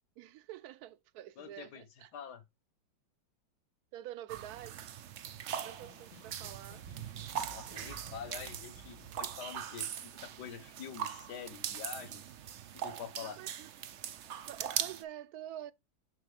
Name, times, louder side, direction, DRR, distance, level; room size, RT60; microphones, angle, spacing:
voice 1, 0.2-2.1 3.9-4.9 5.6-6.8 7.7-8.0 13.2-13.7 14.3-15.7, right 12 dB, 70° right, 0.9 m, -47 dB
voice 2, 1.4-1.8 2.1-2.4 7.5-12.3 12.7-13.4, left 7 dB, 65° left, 1.4 m, -46 dB
sound 1, 4.3-15.0, right 9 dB, 85° right, 0.6 m, -41 dB
Snare drum, 5.4-9.2, left 10 dB, 85° left, 2.0 m, -61 dB
6.7 x 6.3 x 3.3 m
omnidirectional pair, 2.0 m